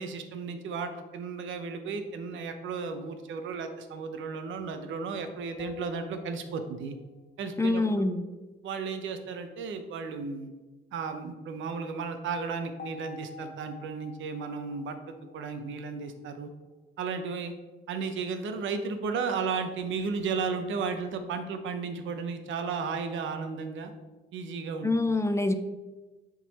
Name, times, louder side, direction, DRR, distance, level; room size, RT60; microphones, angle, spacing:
voice 1, 0.0-7.0 7.4-8.1 8.6-10.5 10.9-16.5 17.0-17.5 17.9-23.9 24.3-24.9, right 5 dB, 75° right, 8 dB, 0.8 m, -34 dB
sound 1, 5.6-7.1 12.8-16.1, left 6 dB, 50° left, 0.9 m, -48 dB
voice 2, 7.6-8.2 24.8-25.5, left 2 dB, 15° left, 9 dB, 0.5 m, -25 dB
7.2 x 3.9 x 4.1 m, 1.2 s
cardioid pair, 90°, 20 cm